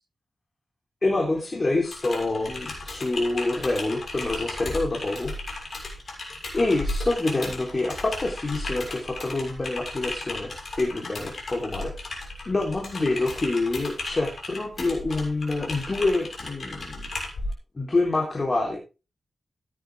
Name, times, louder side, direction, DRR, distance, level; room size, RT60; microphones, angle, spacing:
voice 1, 1.0-5.3 6.5-10.5 10.8-11.9 12.5-17.1 17.7-18.8, left 2 dB, 35° left, -1 dB, 3.6 m, -26 dB
Typing, 1.8-17.5, left 2 dB, 55° left, 6.7 m, -35 dB
16.0 x 9.7 x 3.5 m, 0.31 s
wide cardioid pair, 100°, 0 cm